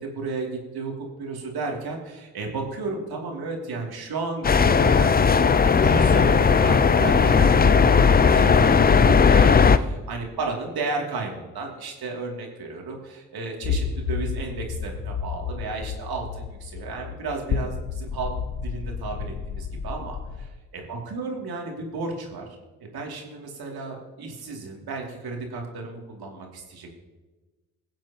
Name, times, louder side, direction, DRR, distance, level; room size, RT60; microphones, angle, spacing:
voice 1, 0.0-0.5 0.7-5.4 5.8-18.3 18.6-22.4 22.8-26.9, right 3 dB, 55° right, 1 dB, 2.8 m, -33 dB
sound 1, 4.4-9.8, left 5 dB, 20° left, 0.6 m, -17 dB
sound 2, 13.6-20.5, left 6 dB, 45° left, 1.0 m, -31 dB
22.0 x 7.5 x 2.9 m, 1.2 s
hypercardioid pair, 50°, 44 cm